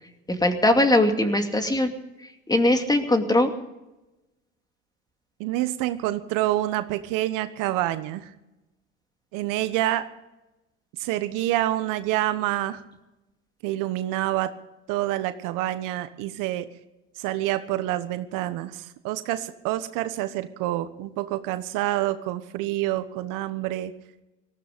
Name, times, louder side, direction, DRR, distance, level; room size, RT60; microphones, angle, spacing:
voice 1, 0.3-1.9 2.5-3.5, left 1 dB, 10° left, 6 dB, 2.5 m, -20 dB
voice 2, 5.4-8.3 9.3-10.1 11.0-12.8 13.6-14.5 14.9-16.7 17.2-23.9, right 15 dB, 65° right, 11 dB, 1.3 m, -27 dB
18.5 x 15.0 x 5.3 m, 0.97 s
hypercardioid pair, 80°, 34 cm